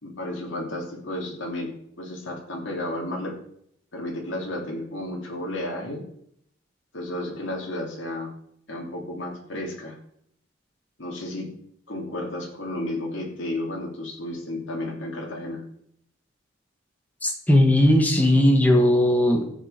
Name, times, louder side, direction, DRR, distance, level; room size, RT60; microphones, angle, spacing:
voice 1, 0.0-3.4 3.9-6.1 6.9-8.3 8.7-9.9 11.0-11.5 11.9-15.6, left 1 dB, 65° left, -2 dB, 3.2 m, -32 dB
voice 2, 17.2-19.5, left 1 dB, 10° left, 2 dB, 1.6 m, -18 dB
14.0 x 8.0 x 5.9 m, 0.71 s
head